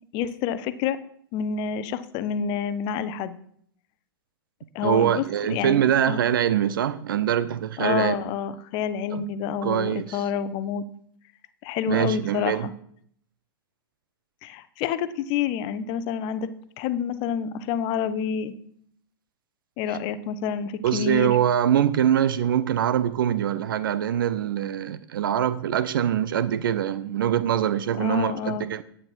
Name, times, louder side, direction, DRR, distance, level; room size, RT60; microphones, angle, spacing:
voice 1, 0.1-1.0 1.3-3.3 4.7-5.2 5.5-5.8 6.1-6.2 7.8-10.8 11.6-12.7 14.4-16.5 16.8-18.5 19.8-21.3 28.0-28.7, left 7 dB, 40° left, 0.9 m, -28 dB
voice 2, 4.8-8.2 9.1-9.2 9.6-10.3 11.9-12.7 20.8-28.8, right 10 dB, 60° right, 0.6 m, -23 dB
10.5 x 8.8 x 4.6 m
figure-of-eight pair, 105°, 13 cm